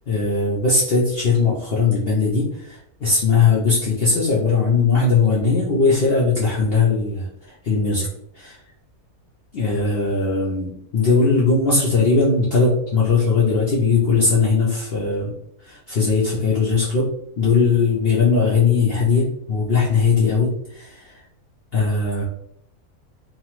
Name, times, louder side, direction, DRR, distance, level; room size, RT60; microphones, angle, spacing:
voice 1, 0.1-8.1 8.3-8.6 9.5-15.3 15.6-17.1 17.4-21.2 21.7-22.2, left 4 dB, 75° left, -6 dB, 0.5 m, -19 dB
2.9 x 2.0 x 2.9 m, 0.74 s
omnidirectional pair, 1.7 m